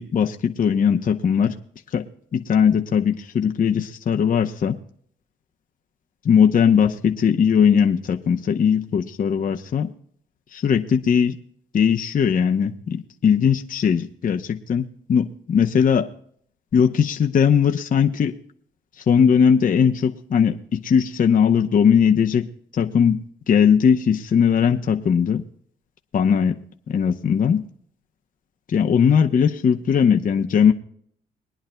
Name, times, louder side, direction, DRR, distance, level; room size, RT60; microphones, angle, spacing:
voice 1, 0.0-1.6 1.9-2.0 2.3-4.8 6.2-9.9 10.5-11.4 11.7-16.1 16.7-18.4 19.1-22.5 22.7-25.4 26.1-26.6 26.9-27.6 28.7-30.7, left 7 dB, 45° left, 4 dB, 0.8 m, -19 dB
23.0 x 10.0 x 2.2 m, 0.63 s
cardioid pair, 90°, 20 cm